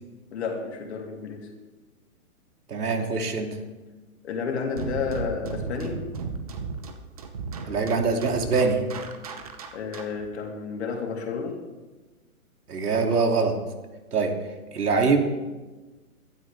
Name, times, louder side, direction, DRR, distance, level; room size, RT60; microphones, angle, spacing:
voice 1, 0.3-1.5 4.2-6.0 9.7-11.6, left 5 dB, 45° left, 1 dB, 3.1 m, -31 dB
voice 2, 2.7-3.6 7.7-8.9 12.7-13.6 14.1-14.4 14.7-15.2, right 4 dB, 80° right, 3 dB, 2.8 m, -23 dB
sound 1, 4.8-10.3, right 5 dB, 25° right, 0.8 m, -35 dB
22.5 x 12.0 x 3.5 m, 1.2 s
hypercardioid pair, 165°, 45 cm